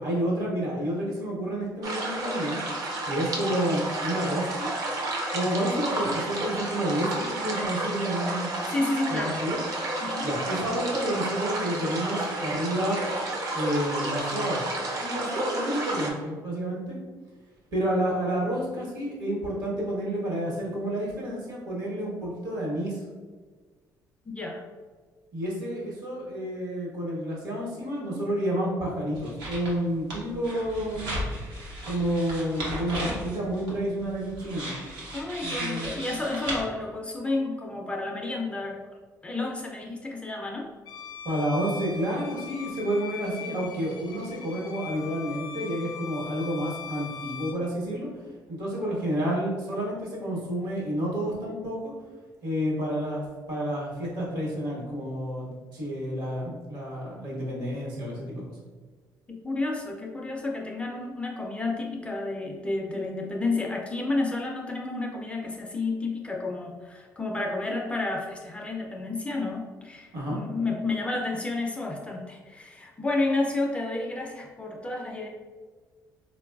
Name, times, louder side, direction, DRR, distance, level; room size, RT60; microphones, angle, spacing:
voice 1, 0.0-2.6 3.0-4.7 5.3-8.5 9.1-9.6 10.2-13.0 13.5-14.6 15.0-17.0 17.7-23.0 25.3-31.2 31.8-34.8 35.4-35.9 41.2-48.1 48.5-51.9 52.4-53.2 53.5-58.6 70.1-70.4, equal, 65° right, -4 dB, 1.1 m, -30 dB
sound 1, 1.8-16.1, right 2 dB, 50° right, 0.6 m, -31 dB
voice 2, 8.7-9.4 10.0-10.3 24.3-24.6 35.1-38.8 39.2-40.6 59.3-75.3, left 2 dB, 15° left, -1 dB, 0.3 m, -31 dB
sound 2, 29.2-29.8 30.1-36.6, right 1 dB, 85° right, 0.8 m, -35 dB
Bowed string instrument, 40.9-47.6, left 6 dB, 70° left, 0.5 m, -40 dB
3.7 x 2.3 x 2.2 m, 1.4 s
cardioid pair, 140°, 7 cm